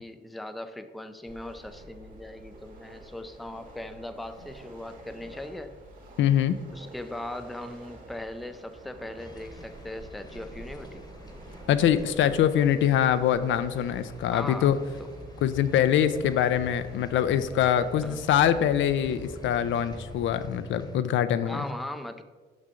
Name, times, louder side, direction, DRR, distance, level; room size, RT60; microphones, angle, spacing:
voice 1, 0.0-5.8 6.7-11.1 14.3-14.8 18.0-18.2 21.4-22.2, left 1 dB, ahead, 9 dB, 0.4 m, -39 dB
sound 1, 1.3-20.5, right 1 dB, 45° right, 1.7 m, -48 dB
voice 2, 6.2-6.6 11.7-14.8 15.4-21.6, left 10 dB, 75° left, 12 dB, 0.4 m, -24 dB
sound 2, 9.2-21.0, left 1 dB, 20° left, 1.0 m, -47 dB
6.3 x 5.5 x 3.7 m, 1.4 s
cardioid pair, 90°, 20 cm